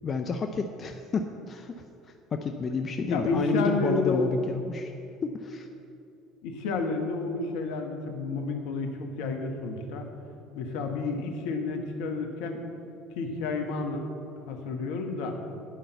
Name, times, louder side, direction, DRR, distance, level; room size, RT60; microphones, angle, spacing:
voice 1, 0.0-1.8 2.3-4.9 5.2-5.7, left 5 dB, 40° left, 5 dB, 0.6 m, -30 dB
voice 2, 3.1-4.3 6.4-10.1 10.5-12.6 13.1-14.0 14.5-15.4, left 3 dB, 70° left, 4 dB, 1.2 m, -30 dB
9.2 x 5.5 x 7.9 m, 2.6 s
hypercardioid pair, 65°, 0 cm